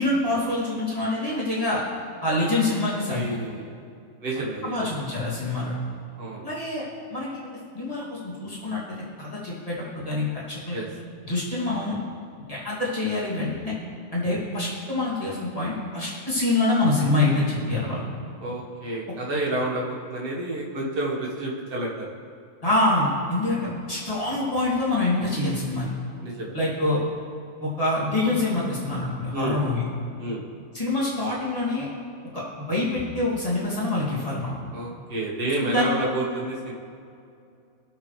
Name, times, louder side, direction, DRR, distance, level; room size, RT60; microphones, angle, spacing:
voice 1, 0.0-1.8 2.2-3.3 4.4-5.8 6.4-6.9 7.1-7.5 7.7-8.8 9.2-10.8 11.3-12.0 12.5-13.7 14.1-18.0 22.6-25.9 26.5-27.0 27.6-29.9 30.7-31.9 32.3-32.4 32.7-34.5 35.6-36.0, left 2 dB, 25° left, -8 dB, 2.7 m, -25 dB
voice 2, 3.1-3.7 4.2-5.0 6.2-6.5 10.7-10.9 18.4-22.1 26.2-26.5 29.3-29.6 30.2-30.4 34.7-36.7, right 1 dB, 40° right, -3 dB, 1.7 m, -29 dB
18.5 x 6.7 x 3.3 m, 2.4 s
omnidirectional pair, 1.5 m